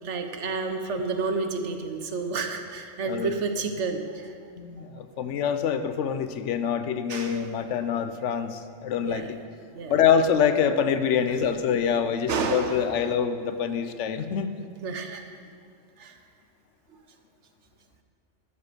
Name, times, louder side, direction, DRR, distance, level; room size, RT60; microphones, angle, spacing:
voice 1, 0.0-4.3 7.1-7.5 9.0-9.3 9.7-9.9 11.3-11.5 12.3-12.9 14.8-15.2 16.0-16.2, right 4 dB, 75° right, 6 dB, 1.2 m, -30 dB
voice 2, 4.6-9.4 9.9-14.5, left 7 dB, 80° left, 10 dB, 1.0 m, -25 dB
12.5 x 6.5 x 6.7 m, 2.2 s
omnidirectional pair, 1.2 m